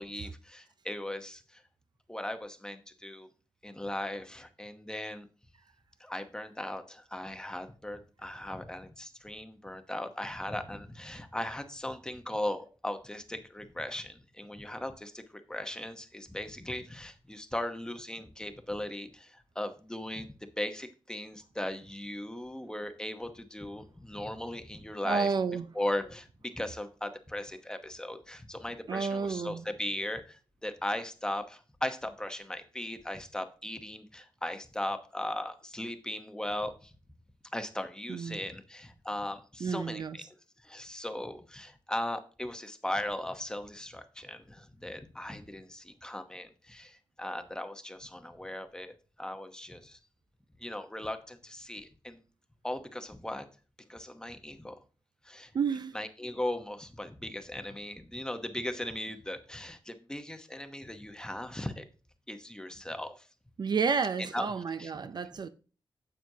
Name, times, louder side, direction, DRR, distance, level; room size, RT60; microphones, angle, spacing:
voice 1, 0.0-1.6 2.1-3.3 3.6-5.3 6.0-20.3 20.6-25.3 25.7-36.9 37.5-40.2 40.6-50.0 50.6-52.2 52.6-53.4 53.9-54.8 55.2-55.5 55.9-61.8 62.3-63.3 64.3-64.5 64.8-64.9, left 1 dB, 10° left, 0.9 m, -38 dB
voice 2, 25.0-25.7 28.9-29.6 38.1-38.4 39.6-40.2 55.5-56.0 63.6-65.5, right 5 dB, 55° right, 0.5 m, -30 dB
9.4 x 7.7 x 2.8 m
wide cardioid pair, 115°, 9 cm